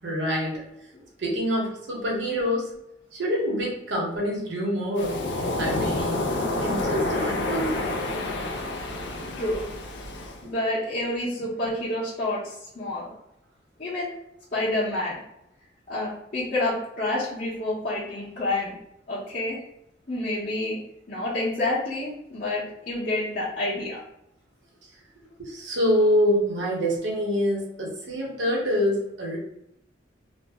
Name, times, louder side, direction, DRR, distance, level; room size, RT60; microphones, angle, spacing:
voice 1, 0.0-0.6 1.2-2.7 3.1-5.2 5.6-6.3 6.6-8.0 10.4-10.5 25.4-29.4, equal, 75° right, -2 dB, 0.9 m, -26 dB
Waves surf, 5.0-10.4, left 2 dB, 65° left, 0.4 m, -29 dB
voice 2, 9.4-9.7 10.4-13.1 13.8-14.1 14.5-15.2 15.9-18.7 19.1-19.6 20.1-20.8 21.1-24.0, left 1 dB, 45° left, -11 dB, 0.8 m, -28 dB
2.6 x 2.0 x 3.3 m, 0.81 s
head